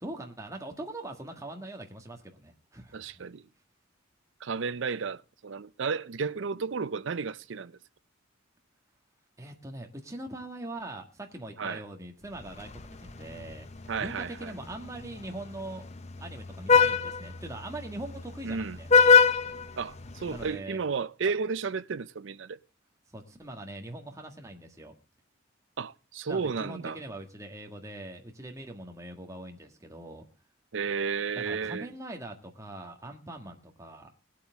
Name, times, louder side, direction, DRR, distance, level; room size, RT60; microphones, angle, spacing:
voice 1, 0.0-3.3 9.4-12.7 13.0-13.7 14.0-15.9 16.2-18.9 20.2-20.8 23.1-24.9 26.3-30.3 31.4-34.1, right 1 dB, 15° right, 1.7 m, -42 dB
voice 2, 2.9-3.4 4.4-7.8 11.6-11.8 13.9-14.5 18.4-18.8 19.8-22.6 25.8-27.0 30.7-31.9, right 5 dB, 65° right, 0.5 m, -33 dB
Vehicle horn car horn honking, 12.4-20.5, left 5 dB, 35° left, 0.6 m, -26 dB
20.0 x 8.5 x 3.5 m
head